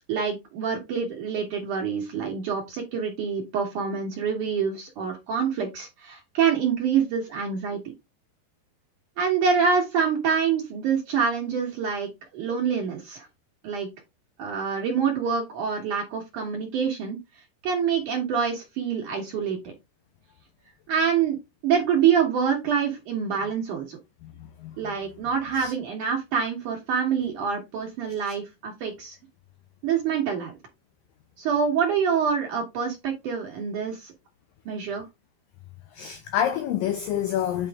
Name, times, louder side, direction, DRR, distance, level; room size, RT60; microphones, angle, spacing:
voice 1, 0.1-7.8 9.2-13.3 13.6-13.9 14.4-17.2 17.6-19.7 20.9-21.4 21.6-24.0 24.8-29.2 29.8-30.5 31.4-34.1 34.7-35.0, right 6 dB, 60° right, 2.3 m, -26 dB
voice 2, 24.2-25.0 25.5-25.7 28.3-28.4 35.9-37.7, left 10 dB, 90° left, 1.9 m, -28 dB
8.9 x 4.6 x 3.5 m
omnidirectional pair, 5.0 m